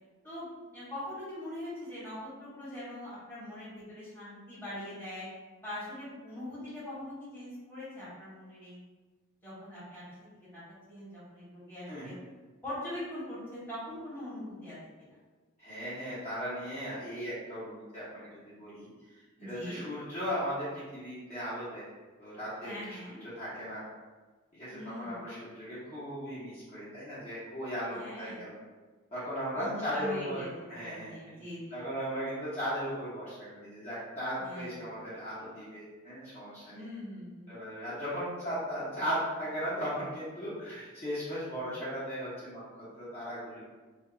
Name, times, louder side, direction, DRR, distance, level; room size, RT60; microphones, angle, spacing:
voice 1, 0.2-5.3 5.6-8.8 9.4-10.0 10.5-10.6 10.9-12.1 12.6-15.2 19.4-19.8 22.6-23.2 24.7-25.2 27.9-28.4 29.5-30.5 30.8-31.8 34.4-34.7 36.7-37.5, left 1 dB, 10° left, -11 dB, 1.1 m, -42 dB
voice 2, 15.6-21.9 22.2-23.8 24.5-28.6 29.1-31.4 31.7-36.8 37.5-43.6, equal, 30° left, -12 dB, 0.9 m, -37 dB
2.5 x 2.3 x 3.7 m, 1.3 s
head